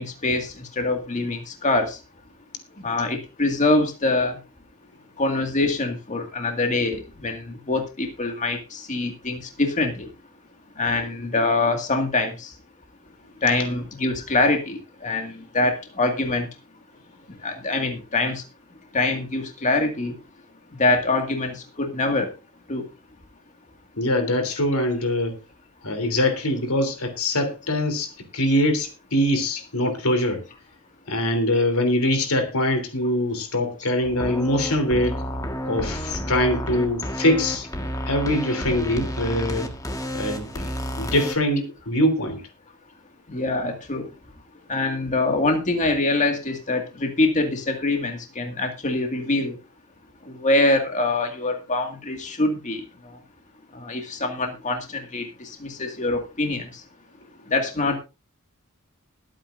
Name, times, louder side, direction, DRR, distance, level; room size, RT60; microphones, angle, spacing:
voice 1, 0.0-2.0 2.8-4.4 5.2-10.1 10.8-12.5 13.4-16.5 17.4-18.4 18.9-20.1 20.8-22.3 22.7-22.8 43.3-44.1 44.7-49.6 50.3-52.8 53.7-56.7 57.5-58.0, left 2 dB, 35° left, 4 dB, 2.1 m, -24 dB
voice 2, 24.0-25.3 25.8-30.4 31.1-35.2 35.7-37.7 38.1-39.7 40.1-40.6 41.0-42.4, left 1 dB, 90° left, 6 dB, 3.4 m, -23 dB
sound 1, 34.0-41.4, equal, 15° left, 1.6 m, -31 dB
21.5 x 8.9 x 2.6 m, 0.28 s
head